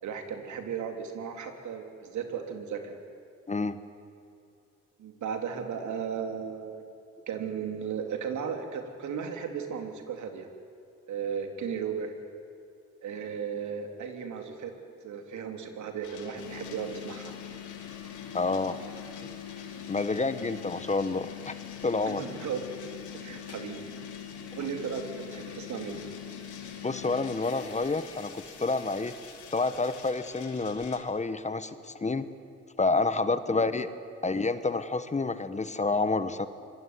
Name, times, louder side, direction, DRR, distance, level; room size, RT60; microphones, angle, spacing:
voice 1, 0.0-3.0 5.0-6.8 7.3-10.5 11.1-12.1 13.0-14.7 15.0-17.3 22.1-22.6 23.1-23.9 24.6-26.0 33.5-33.7, right 7 dB, 70° right, 5 dB, 3.5 m, -35 dB
voice 2, 3.5-3.8 18.3-18.8 19.9-21.5 21.8-22.2 26.8-29.1 29.5-32.3 32.8-33.9 34.2-36.5, left 3 dB, 25° left, 12 dB, 1.4 m, -29 dB
sound 1, 16.0-31.0, left 7 dB, 80° left, 3.6 m, -50 dB
sound 2, 16.3-30.1, left 8 dB, 55° left, 3.7 m, -43 dB
26.0 x 22.5 x 9.5 m, 2.6 s
cardioid pair, 90°, 30 cm